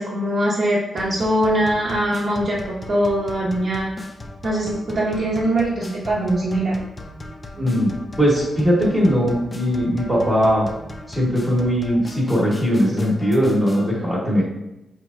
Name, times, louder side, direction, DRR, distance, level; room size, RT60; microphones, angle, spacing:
voice 1, 0.0-3.9 4.4-6.8, right 1 dB, 55° right, -6 dB, 0.8 m, -22 dB
sound 1, 1.0-13.9, left 1 dB, 25° left, 0.4 m, -37 dB
voice 2, 7.6-7.9 8.2-10.7 11.1-14.4, equal, 25° right, -5 dB, 1.0 m, -19 dB
5.0 x 3.0 x 2.4 m, 0.91 s
wide cardioid pair, 125°, 0 cm